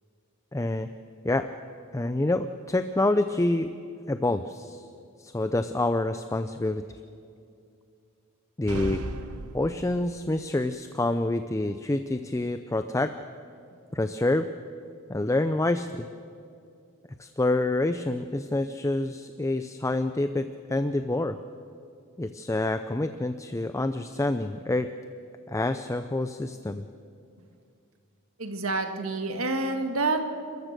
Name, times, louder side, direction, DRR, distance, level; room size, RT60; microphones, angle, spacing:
voice 1, 0.5-0.9 1.2-1.5 1.9-3.7 4.1-4.9 5.2-6.8 8.6-9.0 9.5-13.1 13.9-14.5 15.1-16.1 17.2-21.4 22.2-24.9 25.5-26.8, left 2 dB, 15° left, 10 dB, 0.4 m, -27 dB
sound 1, 8.7-10.3, right 2 dB, 90° right, 1.1 m, -36 dB
voice 2, 28.4-30.2, right 3 dB, 65° right, 5 dB, 1.8 m, -28 dB
29.0 x 14.0 x 6.7 m, 2.5 s
head